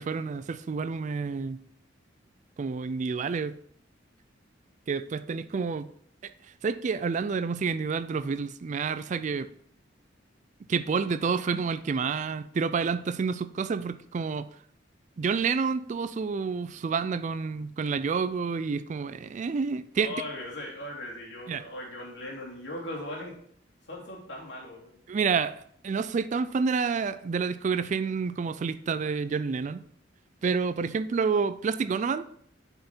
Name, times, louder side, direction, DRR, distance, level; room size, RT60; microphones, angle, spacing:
voice 1, 0.0-1.6 2.6-3.5 4.9-5.9 6.2-6.3 6.6-9.5 10.7-14.5 15.2-20.1 21.5-21.6 25.1-29.8 30.4-32.2, right 5 dB, 40° right, 14 dB, 0.3 m, -29 dB
voice 2, 20.0-23.3 23.9-25.0, left 1 dB, 65° left, -2 dB, 2.7 m, -39 dB
9.1 x 5.5 x 4.4 m, 0.65 s
head